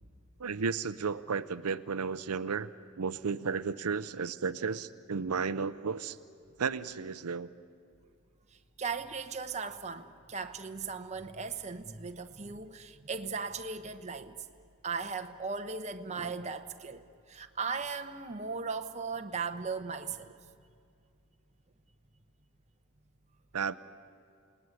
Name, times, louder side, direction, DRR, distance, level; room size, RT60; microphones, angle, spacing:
voice 1, 0.4-2.7 3.0-6.2 6.6-7.5 23.5-23.7, right 5 dB, 85° right, 0.6 m, -33 dB
voice 2, 8.8-14.4 14.8-20.4, right 5 dB, 30° right, 1.0 m, -37 dB
28.0 x 18.5 x 9.7 m
head